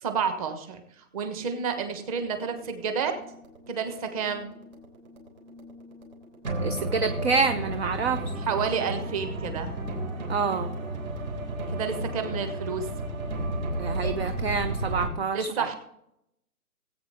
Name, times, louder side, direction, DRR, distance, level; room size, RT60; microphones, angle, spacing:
voice 1, 0.0-3.2 3.7-4.5 8.4-9.7 11.7-12.9 15.3-15.8, right 6 dB, 25° right, 7 dB, 1.4 m, -30 dB
sound 1, 1.7-15.1, right 1 dB, 60° right, 3.7 m, -33 dB
voice 2, 6.6-8.2 10.3-10.7 13.8-15.7, right 5 dB, 40° right, 9 dB, 0.7 m, -27 dB
19.0 x 8.6 x 3.6 m, 0.79 s
hypercardioid pair, 150°, 47 cm